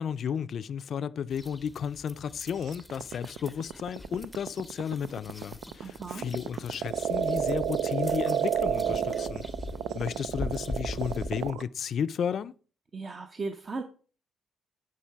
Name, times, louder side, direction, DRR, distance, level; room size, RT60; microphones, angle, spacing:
voice 1, 0.0-9.4 9.9-12.5, left 7 dB, 60° left, 0.4 m, -33 dB
sound 1, 1.3-11.5, left 1 dB, 5° left, 0.7 m, -42 dB
sound 2, 2.7-11.6, right 9 dB, 80° right, 0.4 m, -30 dB
voice 2, 5.8-6.3 12.9-13.8, right 3 dB, 35° right, 0.8 m, -36 dB
10.0 x 4.7 x 4.6 m
cardioid pair, 90°, 0 cm